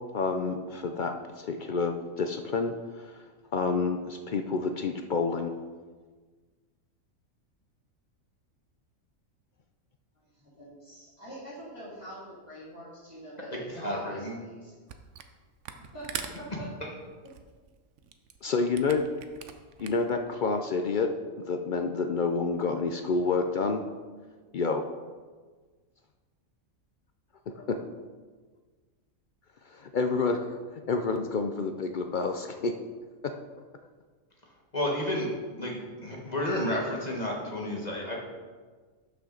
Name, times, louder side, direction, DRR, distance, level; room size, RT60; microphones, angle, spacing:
voice 1, 0.0-3.2 3.5-5.5 18.4-19.0 19.8-23.8 24.5-24.8 27.5-27.8 29.7-32.9 33.2-33.4, left 4 dB, 65° left, 6 dB, 0.4 m, -29 dB
voice 2, 10.4-14.7 15.9-16.4, equal, 10° right, -12 dB, 3.1 m, -44 dB
voice 3, 13.5-14.4 16.8-16.9 34.7-35.3 35.6-38.2, left 1 dB, 30° left, -2 dB, 1.4 m, -31 dB
Camera, 14.9-15.3 15.6-20.2, right 8 dB, 65° right, 1.0 m, -42 dB
12.0 x 5.9 x 3.9 m, 1.4 s
omnidirectional pair, 1.4 m